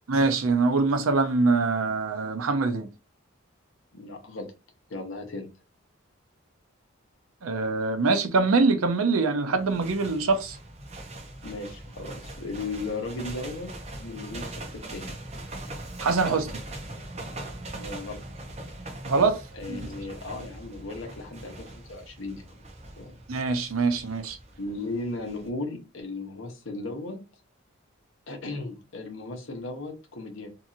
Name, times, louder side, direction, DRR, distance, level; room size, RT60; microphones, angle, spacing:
voice 1, 0.1-2.9 7.4-10.6 16.0-16.6 19.1-19.4 19.7-19.9 23.3-24.4, right 3 dB, 85° right, 0.6 m, -24 dB
voice 2, 3.9-4.5 4.9-5.5 11.4-13.7 14.0-15.1 17.7-18.2 19.5-22.6 23.0-23.2 24.6-27.2 28.3-30.5, left 2 dB, 70° left, 0.9 m, -36 dB
sound 1, 9.6-25.5, right 1 dB, 30° right, 0.6 m, -41 dB
2.8 x 2.7 x 2.5 m
head